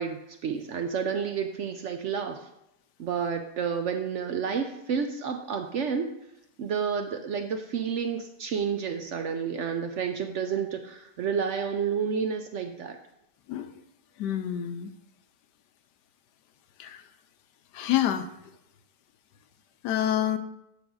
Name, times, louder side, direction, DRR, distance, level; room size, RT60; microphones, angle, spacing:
voice 1, 0.0-2.5 3.0-6.1 6.6-13.0, right 6 dB, 65° right, 5 dB, 0.7 m, -30 dB
voice 2, 14.2-14.9 16.8-17.0 17.7-18.3 19.8-20.4, left 11 dB, 90° left, 9 dB, 1.2 m, -27 dB
8.7 x 3.5 x 6.2 m, 0.83 s
omnidirectional pair, 1.7 m